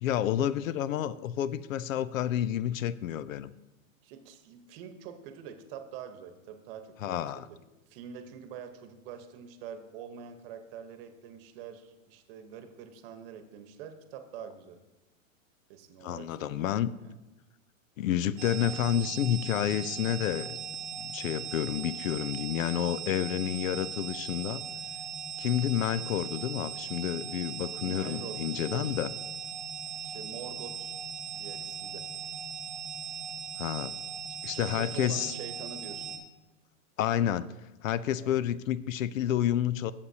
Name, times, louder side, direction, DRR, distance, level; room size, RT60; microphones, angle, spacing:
voice 1, 0.0-3.5 7.0-7.5 16.0-16.9 18.0-20.6 21.0-24.6 25.4-29.1 33.6-34.0 34.4-35.3 37.0-39.9, left 11 dB, 75° left, 17 dB, 0.6 m, -30 dB
voice 2, 4.0-7.6 7.9-14.8 15.7-17.1 27.8-28.9 30.0-30.9 31.3-32.1 34.5-36.2 38.2-38.4, right 8 dB, 45° right, 8 dB, 1.1 m, -45 dB
sound 1, 18.4-36.2, right 7 dB, 10° right, 1.6 m, -39 dB
14.5 x 7.1 x 2.8 m, 1.0 s
hypercardioid pair, 135°, 41 cm